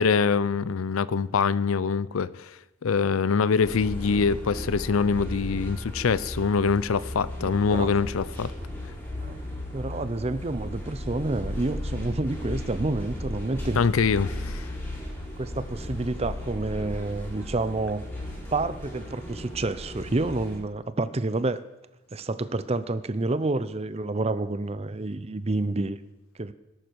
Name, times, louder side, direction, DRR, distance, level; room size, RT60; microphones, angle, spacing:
voice 1, 0.0-2.5 2.8-8.5 13.8-14.7, left 5 dB, 80° left, 0.5 m, -24 dB
sound 1, 3.6-20.6, left 1 dB, 15° left, 6.1 m, -36 dB
voice 2, 7.4-7.9 9.2-9.4 9.7-13.8 15.4-18.0 18.5-21.6 22.1-26.0 26.4-26.5, right 2 dB, 30° right, 0.6 m, -29 dB
18.5 x 11.0 x 4.7 m
head